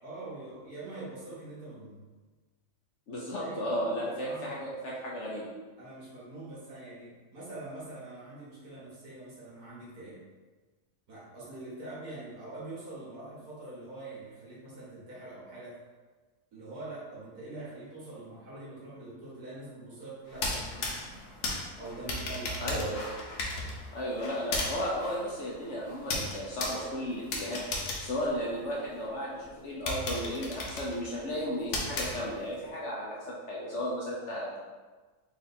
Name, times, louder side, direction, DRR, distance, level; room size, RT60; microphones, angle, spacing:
voice 1, 0.0-2.1 3.4-3.6 4.0-4.7 5.8-10.2 11.1-15.8 16.5-21.2 21.8-22.8, right 2 dB, 70° right, -8 dB, 2.0 m, -44 dB
voice 2, 3.1-5.5 22.6-23.1 23.9-27.6 28.0-34.6, equal, 55° left, -5 dB, 0.9 m, -34 dB
sound 1, 20.3-29.0 29.4-29.5 29.9-32.6, left 2 dB, 80° left, 1.3 m, -36 dB
4.2 x 2.7 x 4.2 m, 1.3 s
omnidirectional pair, 1.6 m